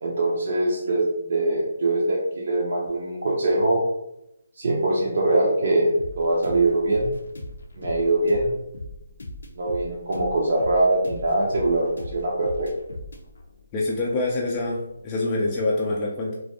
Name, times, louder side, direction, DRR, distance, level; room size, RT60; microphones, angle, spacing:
voice 1, 0.0-3.8 4.6-7.1 7.8-8.5 9.6-12.7, right 2 dB, 60° right, -3 dB, 0.5 m, -23 dB
sound 1, 6.0-15.6, left 2 dB, 75° left, 0.5 m, -40 dB
voice 2, 13.7-16.3, left 2 dB, 25° left, -3 dB, 0.4 m, -25 dB
2.4 x 2.2 x 2.7 m, 0.84 s
hypercardioid pair, 155°, 0 cm